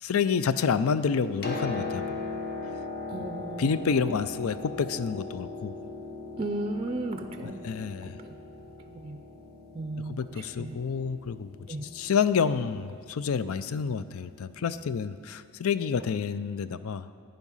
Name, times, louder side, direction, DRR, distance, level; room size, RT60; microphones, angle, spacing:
voice 1, 0.0-2.2 3.6-5.7 7.4-8.2 10.1-11.5 11.9-17.1, left 6 dB, 90° left, 14 dB, 0.4 m, -28 dB
Piano, 1.3-14.9 16.0-16.1, left 3 dB, 50° left, 1.1 m, -40 dB
voice 2, 3.1-3.7 4.1-4.2 6.4-7.6 8.0-8.4 8.9-9.2 9.7-10.8 11.7-11.8, right 2 dB, 25° right, 6 dB, 0.4 m, -35 dB
12.0 x 9.1 x 5.5 m, 2.3 s
head